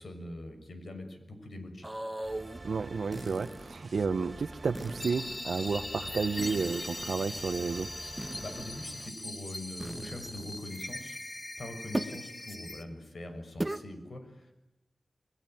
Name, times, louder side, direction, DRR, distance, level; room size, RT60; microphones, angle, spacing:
voice 1, 0.0-1.9 8.4-11.2 11.6-14.5, left 1 dB, 65° left, 6 dB, 6.4 m, -43 dB
sound 1, 1.8-2.6 3.1-3.8 4.7-5.4 6.4-7.1 8.2-8.9 9.8-10.6 11.9-12.2 12.5-12.6 13.6-13.8, right 1 dB, 15° right, 1.4 m, -38 dB
sound 2, 2.2-9.1, right 2 dB, 35° right, 3.6 m, -47 dB
voice 2, 2.6-7.9, right 5 dB, 90° right, 6 dB, 1.0 m, -32 dB
sound 3, 5.0-12.8, left 1 dB, 30° left, 2.5 m, -41 dB
30.0 x 21.5 x 9.2 m, 0.95 s
wide cardioid pair, 90°, 0 cm